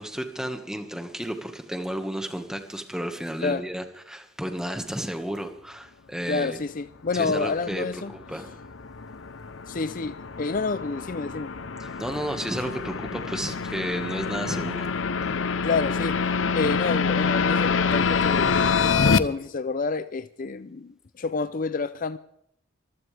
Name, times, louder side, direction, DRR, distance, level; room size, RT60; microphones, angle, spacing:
voice 1, 0.0-6.6 7.1-8.0 8.3-8.6 11.8-14.9, right 1 dB, 5° right, 1.7 m, -32 dB
voice 2, 6.3-8.1 9.7-11.5 15.6-18.5 19.0-22.2, left 4 dB, 45° left, 0.5 m, -29 dB
sound 1, 7.7-19.2, left 5 dB, 85° left, 0.8 m, -26 dB
24.5 x 15.5 x 3.5 m
head